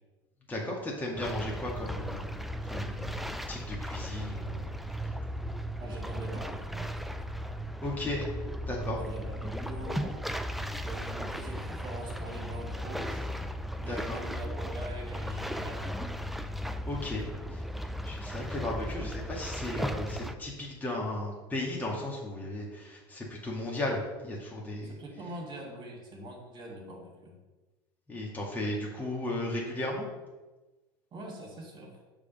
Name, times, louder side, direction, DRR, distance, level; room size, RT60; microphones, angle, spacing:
voice 1, 0.5-2.4 2.7-4.6 7.8-8.3 8.7-9.0 13.9-14.2 16.9-17.2 17.5-17.6 18.0-24.9 28.1-30.1, left 1 dB, 15° left, -3 dB, 1.8 m, -35 dB
sound 1, 1.2-20.4, equal, ahead, 0.4 m, -36 dB
voice 2, 5.8-6.9 8.9-10.2 10.8-13.3 13.8-15.8 18.9-19.1 24.8-27.4 31.1-32.0, right 1 dB, 40° right, 0 dB, 2.3 m, -43 dB
6.6 x 3.7 x 5.3 m, 1.2 s
supercardioid pair, 90°, 12 cm